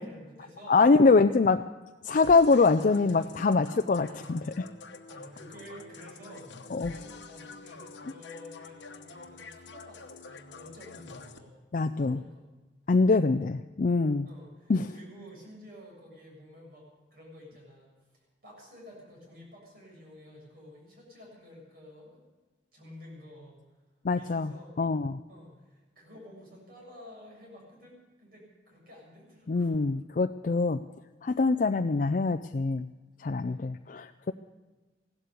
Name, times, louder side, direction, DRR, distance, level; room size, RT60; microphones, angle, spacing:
voice 1, 0.0-0.8 2.8-3.3 4.0-4.4 5.1-11.5 11.9-12.5 14.2-22.2 22.7-23.6 24.1-24.8 25.3-29.7 33.4-33.7, equal, 55° right, -2 dB, 7.3 m, -51 dB
voice 2, 0.7-1.6 2.0-4.6 6.7-6.9 11.7-12.2 12.9-14.3 14.7-14.9 24.0-25.2 29.5-30.8 31.2-32.9 33.2-34.3, left 3 dB, 45° left, 8 dB, 0.4 m, -24 dB
sound 1, 2.2-11.4, left 3 dB, 85° left, 1.1 m, -47 dB
16.5 x 12.5 x 6.7 m, 1.2 s
head